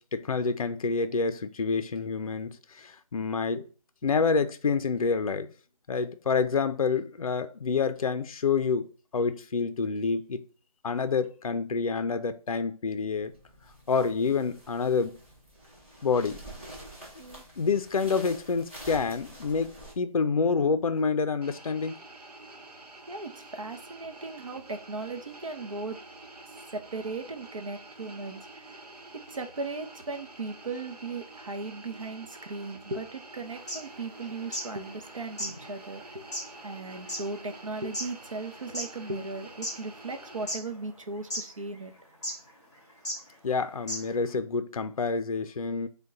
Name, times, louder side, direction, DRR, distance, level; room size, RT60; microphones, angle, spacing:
voice 1, 0.0-3.6 4.0-5.5 5.9-8.9 9.1-10.4 10.8-13.3 13.9-15.2 16.0-16.4 17.6-21.9 43.4-45.9, left 5 dB, 65° left, 0.4 m, -28 dB
sound 1, 13.1-19.9, right 1 dB, 20° right, 0.9 m, -47 dB
sound 2, 21.4-40.5, right 2 dB, 85° right, 1.0 m, -48 dB
voice 2, 23.1-26.0 26.7-28.8 29.1-36.2 36.6-41.9, right 3 dB, 55° right, 0.6 m, -37 dB
sound 3, 33.6-34.7 35.0-35.1 35.4-38.9 39.4-40.2 40.5-41.0 41.3-41.4 42.2-42.5 43.0-43.2 43.5-43.6 43.9-44.2, equal, 5° left, 1.2 m, -35 dB
5.2 x 2.2 x 3.7 m
figure-of-eight pair, 180°, 20 cm